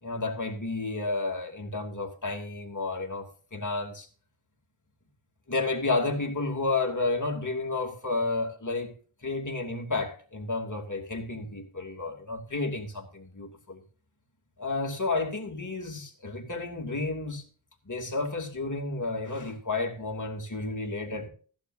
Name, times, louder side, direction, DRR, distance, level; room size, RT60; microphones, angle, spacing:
voice 1, 0.0-4.1 5.5-8.9 9.2-13.8 14.6-17.4 17.8-21.3, left 3 dB, 40° left, 2.6 m, -31 dB
16.0 x 11.5 x 2.6 m
wide cardioid pair, 65°, 47 cm